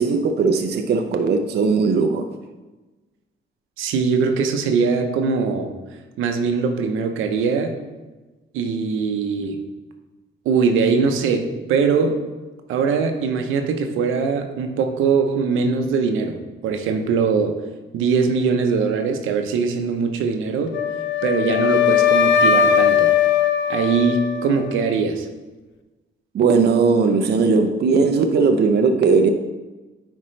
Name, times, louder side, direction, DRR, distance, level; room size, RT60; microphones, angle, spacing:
voice 1, 0.0-2.3 26.3-29.3, right 4 dB, 55° right, 0.6 m, -18 dB
voice 2, 3.8-5.7 6.2-7.8 8.5-9.6 10.4-12.2 12.7-16.3 16.6-17.6 17.9-20.8 21.2-23.1 23.7-25.3, right 5 dB, 90° right, 0.8 m, -21 dB
Wind instrument woodwind instrument, 20.7-24.8, left 8 dB, 70° left, 0.6 m, -19 dB
9.6 x 4.4 x 3.2 m
cardioid pair, 90°, 20 cm